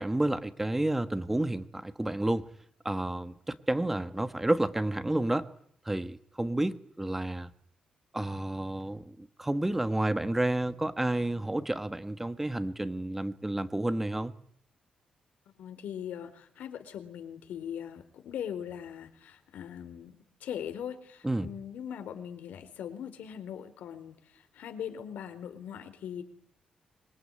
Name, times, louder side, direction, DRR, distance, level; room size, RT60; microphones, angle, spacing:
voice 1, 0.0-2.5 2.8-5.5 5.8-7.5 8.1-14.3 21.2-21.5, right 1 dB, 10° right, 1.3 m, -30 dB
voice 2, 15.6-26.2, left 9 dB, 80° left, 4.1 m, -40 dB
25.5 x 23.0 x 9.8 m
cardioid pair, 140°, 3 cm